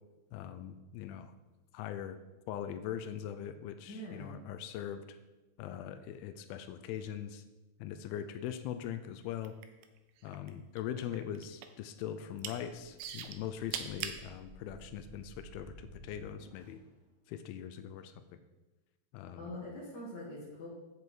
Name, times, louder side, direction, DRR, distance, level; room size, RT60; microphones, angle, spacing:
voice 1, 0.3-1.3 1.7-2.2 2.5-5.2 5.6-7.4 7.8-9.5 10.2-16.8 17.3-18.2 19.1-19.5, left 10 dB, 85° left, 10 dB, 2.2 m, -41 dB
voice 2, 3.9-4.4 19.4-20.7, left 1 dB, 65° left, -5 dB, 1.0 m, -43 dB
sound 1, 9.4-10.5 10.8-11.8 12.2-12.6 13.0-14.2 14.9-15.0, right 9 dB, 90° right, 2.0 m, -40 dB
sound 2, 12.7-16.9, right 2 dB, 40° left, 0.4 m, -55 dB
8.2 x 7.6 x 4.6 m, 1.1 s
omnidirectional pair, 4.9 m